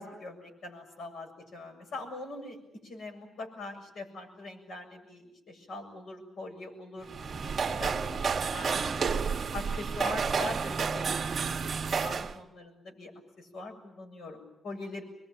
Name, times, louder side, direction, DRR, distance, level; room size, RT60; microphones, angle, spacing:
voice 1, 0.0-2.6 2.8-9.1 9.5-13.1 13.4-15.0, left 2 dB, 70° left, 2 dB, 7.2 m, -43 dB
sound 1, 7.0-12.4, right 5 dB, 35° right, 1.3 m, -30 dB
25.0 x 22.0 x 9.2 m, 0.86 s
wide cardioid pair, 150°, 0 cm